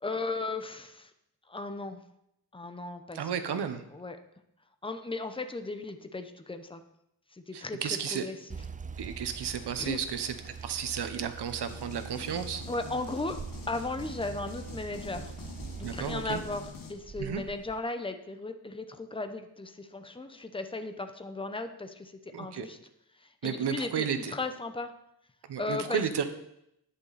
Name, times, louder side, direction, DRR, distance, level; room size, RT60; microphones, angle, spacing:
voice 1, 0.0-1.1 1.5-2.0 2.5-3.6 3.9-4.2 4.8-6.8 7.3-8.5 9.8-10.0 12.7-13.4 13.7-15.3 15.7-22.1 22.4-22.8 23.2-24.9 25.6-26.0, left 2 dB, 15° left, 8 dB, 0.8 m, -36 dB
voice 2, 3.1-3.8 7.5-8.3 9.0-12.6 15.8-16.4 17.2-17.4 22.3-22.7 23.4-24.3 25.5-26.2, right 7 dB, 80° right, 9 dB, 1.1 m, -33 dB
sound 1, 8.5-17.8, right 5 dB, 20° right, 0.4 m, -43 dB
sound 2, 11.6-16.9, left 5 dB, 55° left, 1.4 m, -46 dB
11.5 x 9.7 x 4.2 m, 0.79 s
wide cardioid pair, 125°, 40 cm